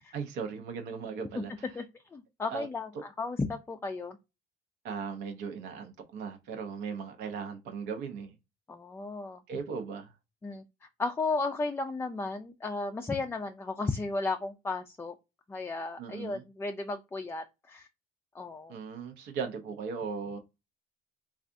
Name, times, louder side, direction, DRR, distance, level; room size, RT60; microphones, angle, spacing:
voice 1, 0.0-1.7 2.5-2.7 4.8-8.4 9.5-10.1 16.0-16.4 18.7-20.4, right 6 dB, 85° right, 0.7 m, -38 dB
voice 2, 2.1-4.2 8.7-9.4 10.4-10.6 11.0-15.1 15.5-17.9 18.3-18.8, left 3 dB, 15° left, 0.3 m, -34 dB
3.4 x 2.4 x 2.5 m
cardioid pair, 110°, 17 cm